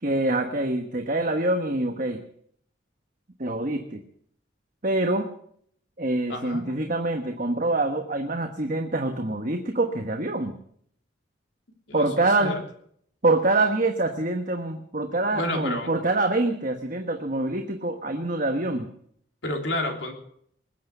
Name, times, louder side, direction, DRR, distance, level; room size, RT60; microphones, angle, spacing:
voice 1, 0.0-2.2 3.4-4.0 4.8-5.3 6.0-10.6 11.9-12.6 13.2-18.9, right 2 dB, 45° right, 5 dB, 1.2 m, -25 dB
voice 2, 6.3-6.8 11.9-12.0 12.4-12.6 15.3-15.9 19.4-20.1, left 1 dB, 70° left, 3 dB, 3.3 m, -30 dB
21.0 x 8.4 x 7.9 m, 0.66 s
head